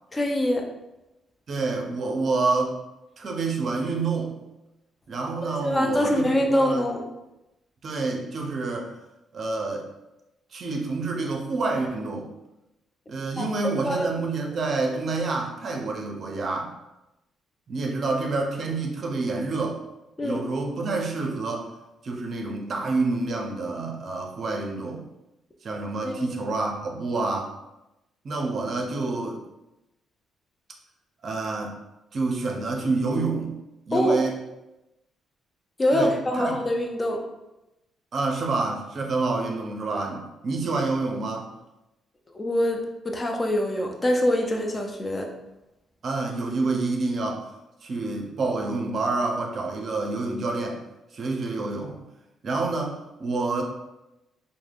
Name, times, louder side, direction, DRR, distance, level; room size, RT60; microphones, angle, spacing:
voice 1, 0.1-0.7 5.6-7.1 13.4-14.1 20.2-20.4 26.0-26.4 33.9-34.2 35.8-37.2 42.3-45.3, left 1 dB, 25° left, 2 dB, 0.4 m, -24 dB
voice 2, 1.5-2.8 3.2-4.3 5.1-6.4 6.6-6.8 7.8-8.9 9.3-9.9 10.5-12.3 13.1-16.7 17.7-19.8 20.2-21.7 22.0-25.0 25.6-27.5 28.2-29.4 31.2-31.7 32.1-33.6 33.9-34.3 35.9-36.5 38.1-41.5 46.0-47.4 47.8-50.8 51.1-52.0 52.4-53.6, right 3 dB, 50° right, 1 dB, 0.5 m, -28 dB
3.3 x 2.1 x 2.3 m, 0.95 s
cardioid pair, 90°, 0 cm